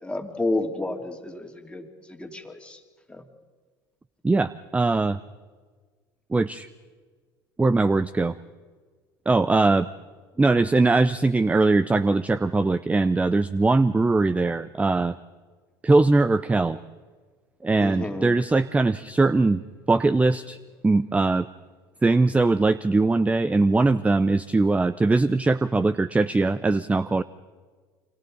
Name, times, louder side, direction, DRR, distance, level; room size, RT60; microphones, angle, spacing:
voice 1, 0.0-1.9 2.2-2.8 3.1-3.2 17.8-18.3, left 2 dB, 10° left, 3 dB, 2.7 m, -30 dB
voice 2, 4.2-5.2 6.3-6.7 7.6-8.4 9.3-9.9 10.4-15.2 15.8-16.8 17.6-19.6 19.9-20.6 20.8-21.5 22.0-27.2, right 3 dB, 10° right, 16 dB, 0.5 m, -21 dB
30.0 x 24.5 x 4.0 m, 1.5 s
hypercardioid pair, 85°, 11 cm